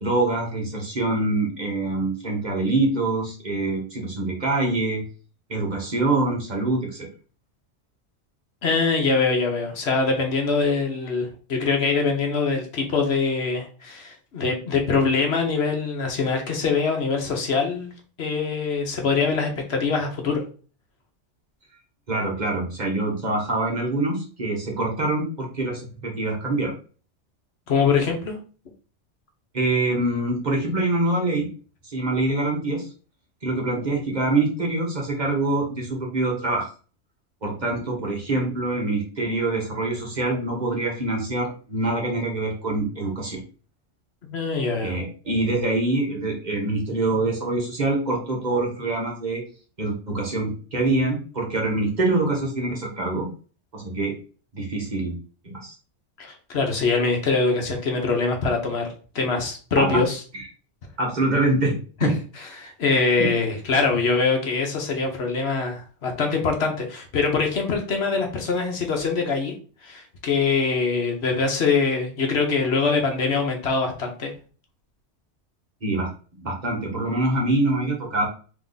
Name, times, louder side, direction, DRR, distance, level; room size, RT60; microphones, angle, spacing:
voice 1, 0.0-5.0 5.5-7.1 22.1-26.7 29.5-31.5 31.9-32.9 33.4-36.7 37.4-43.4 44.8-49.4 49.8-53.3 53.7-54.1 54.5-55.2 55.4-55.7 59.8-60.0 60.3-60.5 61.0-62.1 63.2-63.3 75.8-76.1 76.4-78.2, right 2 dB, 40° right, -1 dB, 1.2 m, -25 dB
voice 2, 8.6-17.9 18.2-20.4 27.7-28.4 44.2-45.0 56.2-58.9 59.1-60.2 62.0-69.5 69.8-74.3, left 4 dB, 65° left, 3 dB, 1.1 m, -23 dB
3.5 x 3.0 x 3.9 m, 0.38 s
omnidirectional pair, 1.2 m